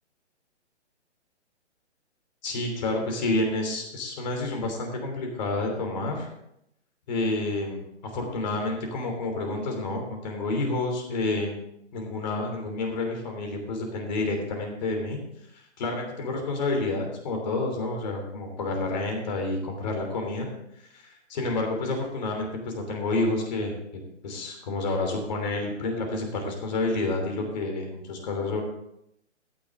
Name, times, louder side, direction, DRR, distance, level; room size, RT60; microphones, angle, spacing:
voice 1, 2.4-6.3 7.1-7.8 8.1-11.5 11.9-15.2 15.5-20.5 20.7-23.7 24.2-28.6, left 2 dB, 35° left, 3 dB, 3.1 m, -29 dB
13.0 x 9.7 x 3.8 m, 0.79 s
hypercardioid pair, 160°, 35 cm